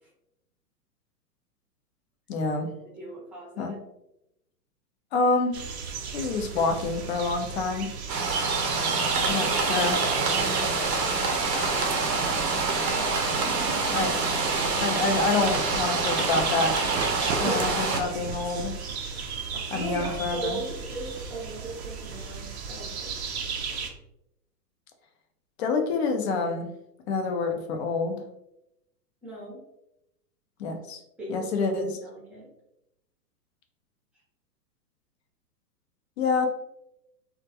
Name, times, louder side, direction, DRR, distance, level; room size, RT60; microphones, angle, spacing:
voice 1, 2.3-2.7 3.6-3.8 5.1-5.6 6.1-7.9 9.3-10.1 12.6-12.8 13.9-14.1 14.8-16.8 17.4-18.8 19.7-20.6 25.6-26.7 27.1-28.2 30.6-31.0 31.3-32.0 36.2-36.5, left 3 dB, 45° left, 5 dB, 0.5 m, -27 dB
voice 2, 2.8-3.8 10.4-11.3 17.5-17.6 19.7-23.1 29.2-29.6 31.2-32.5, right 2 dB, 5° right, -6 dB, 0.6 m, -39 dB
sound 1, 5.5-23.9, right 5 dB, 45° right, 0.4 m, -34 dB
sound 2, 8.1-18.0, right 3 dB, 80° right, 0.7 m, -26 dB
2.3 x 2.1 x 2.7 m, 0.84 s
hypercardioid pair, 120°, 48 cm